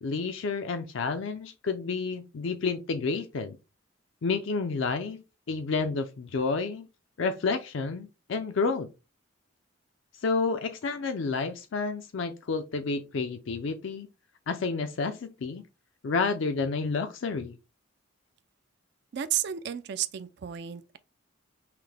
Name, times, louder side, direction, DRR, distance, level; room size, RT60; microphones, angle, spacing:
voice 1, 0.0-3.6 4.2-5.2 5.5-6.9 7.2-8.9 10.2-14.1 14.5-15.6 16.0-17.6, left 4 dB, 65° left, 0.4 m, -30 dB
voice 2, 19.1-21.0, right 10 dB, 50° right, 0.3 m, -32 dB
5.7 x 2.1 x 3.3 m
head